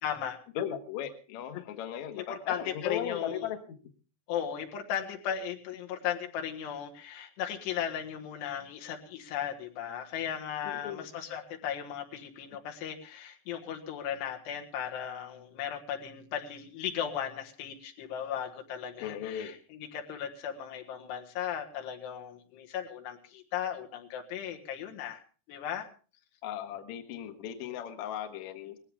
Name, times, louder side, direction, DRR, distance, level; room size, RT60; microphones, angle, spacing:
voice 1, 0.0-0.4 1.5-1.7 2.2-3.5 4.3-25.2 25.5-25.9 27.7-27.9, left 9 dB, 80° left, 3 dB, 3.6 m, -36 dB
voice 2, 0.6-3.6 10.6-11.1 19.0-19.6 26.4-28.8, left 9 dB, 60° left, 6 dB, 2.0 m, -37 dB
19.5 x 15.5 x 3.5 m, 0.37 s
omnidirectional pair, 4.9 m